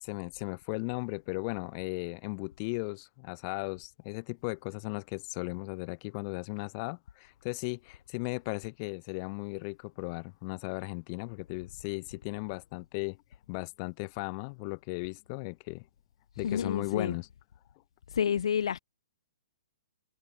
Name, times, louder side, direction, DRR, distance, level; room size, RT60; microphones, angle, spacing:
voice 1, 0.0-13.2 13.5-15.9 16.4-17.3, left 32 dB, 30° left, 5.5 m, -36 dB
voice 2, 16.4-17.1 18.1-18.8, left 8 dB, 70° left, 3.3 m, -29 dB
hypercardioid pair, 165°, 3 cm